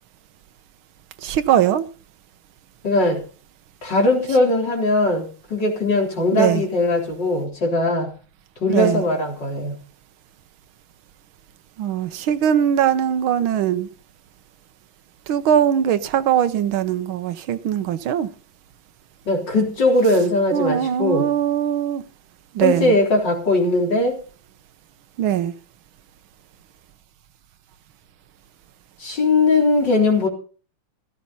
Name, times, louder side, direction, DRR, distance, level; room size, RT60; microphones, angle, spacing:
voice 1, 1.2-1.8 6.3-6.6 8.7-9.0 11.8-13.9 15.3-18.3 20.5-22.0 22.5-22.9 25.2-25.5, right 10 dB, 90° right, 1.7 m, -20 dB
voice 2, 2.8-3.2 3.8-8.1 8.6-9.8 19.3-21.3 22.6-24.2 29.0-30.3, left 2 dB, 60° left, 4.4 m, -20 dB
16.0 x 13.0 x 4.1 m
omnidirectional pair, 2.2 m